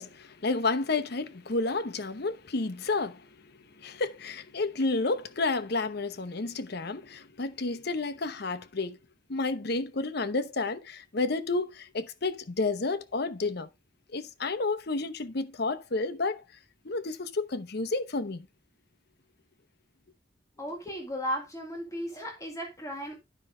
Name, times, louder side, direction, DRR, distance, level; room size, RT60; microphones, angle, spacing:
voice 1, 0.0-3.2 3.8-9.0 9.3-13.7 14.1-16.4 16.8-18.5, left 3 dB, 60° left, 0.9 m, -31 dB
voice 2, 20.6-23.2, equal, 20° left, 1.9 m, -35 dB
10.5 x 5.4 x 3.8 m
head